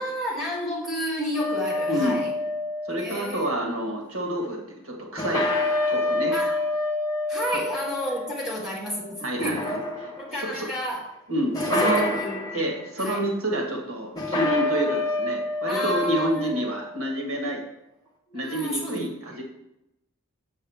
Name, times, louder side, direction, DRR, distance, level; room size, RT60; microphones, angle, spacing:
voice 1, 0.0-2.3 3.0-3.5 6.3-6.6 7.3-9.8 10.2-11.1 11.6-12.7 13.0-13.2 15.7-16.5 18.3-19.4, equal, ahead, -5 dB, 1.9 m, -31 dB
sound 1, 1.3-3.4 5.2-8.9 9.4-10.4 11.5-12.7 14.2-16.9, left 2 dB, 20° left, 1.0 m, -27 dB
voice 2, 1.9-2.2 2.9-5.5 5.9-6.3 7.5-7.6 9.2-9.6 10.0-10.1 10.4-10.7 11.3-12.1 12.5-17.6 18.3-19.4, right 1 dB, 80° right, 1 dB, 1.6 m, -28 dB
7.1 x 6.9 x 3.5 m, 0.87 s
head